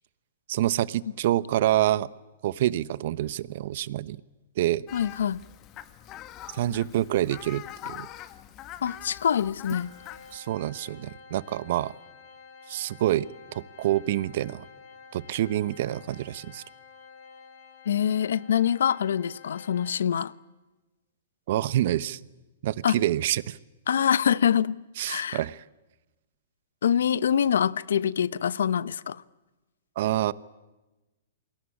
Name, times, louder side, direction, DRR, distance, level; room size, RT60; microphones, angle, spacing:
voice 1, 0.5-2.1 2.4-4.2 4.6-4.8 6.5-8.1 10.3-11.9 12.7-14.7 15.1-16.6 21.5-22.2 22.6-23.6 25.0-25.6 30.0-30.3, right 13 dB, 55° right, 1.0 m, -27 dB
voice 2, 4.9-5.4 8.8-9.9 17.9-20.3 22.8-23.0 23.9-24.8 25.1-25.4 26.8-29.2, left 8 dB, 75° left, 0.9 m, -25 dB
Fowl, 4.9-10.4, left 12 dB, 30° left, 1.6 m, -43 dB
Organ, 9.7-20.4, left 5 dB, 45° left, 3.9 m, -51 dB
28.5 x 22.0 x 8.7 m
hypercardioid pair, 145°, 0 cm